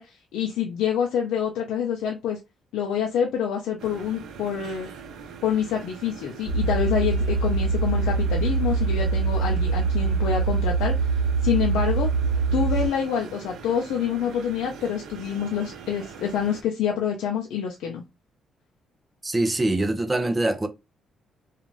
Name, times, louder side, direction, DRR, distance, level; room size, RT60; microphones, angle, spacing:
voice 1, 0.0-2.4 2.7-4.9 5.4-11.1 11.4-12.1 12.5-18.0, left 8 dB, 85° left, 0.5 m, -27 dB
sound 1, 3.8-16.6, right 6 dB, 80° right, 0.6 m, -42 dB
sound 2, 6.5-12.9, right 4 dB, 60° right, 1.2 m, -23 dB
voice 2, 19.2-20.7, right 2 dB, 20° right, 0.5 m, -23 dB
2.5 x 2.4 x 3.1 m
cardioid pair, 90°, 0 cm